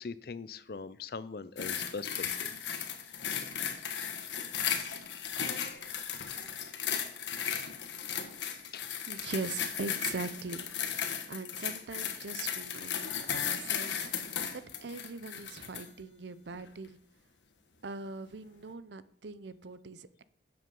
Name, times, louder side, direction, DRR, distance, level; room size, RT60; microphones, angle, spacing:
voice 1, 0.0-2.6 8.7-8.9, left 4 dB, 55° left, 16 dB, 0.5 m, -41 dB
sound 1, 1.6-15.9 16.5-16.7, left 8 dB, 80° left, 1.3 m, -36 dB
voice 2, 9.1-17.0 17.8-20.2, right 4 dB, 70° right, 15 dB, 0.6 m, -41 dB
11.5 x 7.8 x 5.4 m, 0.65 s
head